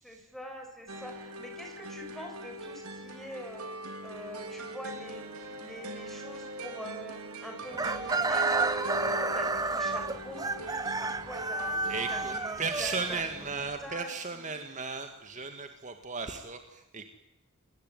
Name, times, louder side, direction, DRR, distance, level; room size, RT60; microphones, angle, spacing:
voice 1, 0.0-3.7 4.0-5.2 5.6-11.8 12.1-14.5, equal, ahead, 3 dB, 6.6 m, -44 dB
sound 1, 0.9-12.4, right 2 dB, 85° right, 4.3 m, -41 dB
Chicken rooster, 7.7-13.7, right 3 dB, 15° right, 1.0 m, -31 dB
voice 2, 11.9-17.1, right 4 dB, 35° right, 6 dB, 2.1 m, -36 dB
29.0 x 21.0 x 9.5 m, 0.92 s
head